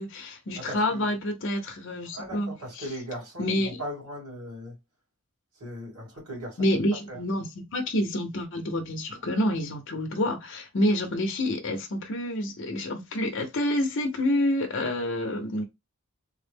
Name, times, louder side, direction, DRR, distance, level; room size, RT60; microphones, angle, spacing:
voice 1, 0.0-2.5 3.4-3.8 6.6-7.5 7.7-15.6, left 1 dB, 55° left, 0.6 m, -28 dB
voice 2, 0.6-1.1 2.1-4.8 5.5-6.7 7.1-7.2, equal, 90° right, 2.2 m, -38 dB
3.6 x 2.0 x 3.3 m
head